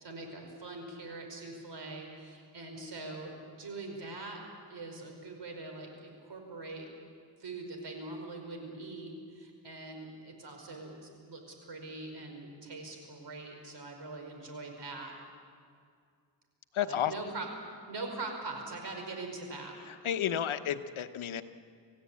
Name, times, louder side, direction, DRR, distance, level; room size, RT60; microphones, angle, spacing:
voice 1, 0.0-4.4 4.7-6.9 7.4-15.1 16.8-17.5 17.9-19.7, right 3 dB, 60° right, 3 dB, 5.2 m, -42 dB
voice 2, 16.7-17.1 19.9-21.4, left 10 dB, 90° left, 10 dB, 1.1 m, -32 dB
27.5 x 16.0 x 8.6 m, 2.2 s
wide cardioid pair, 105°, 47 cm